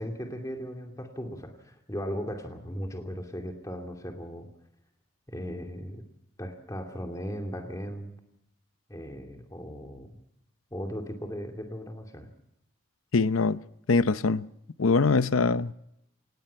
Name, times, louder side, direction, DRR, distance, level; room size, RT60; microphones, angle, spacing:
voice 1, 0.0-4.5 5.3-6.0 6.4-8.1 8.9-10.1 10.7-12.3, equal, 15° left, 2.6 m, -37 dB
voice 2, 13.1-13.6 13.9-14.5 14.8-15.7, left 4 dB, 85° left, 0.7 m, -23 dB
27.0 x 19.0 x 5.7 m
head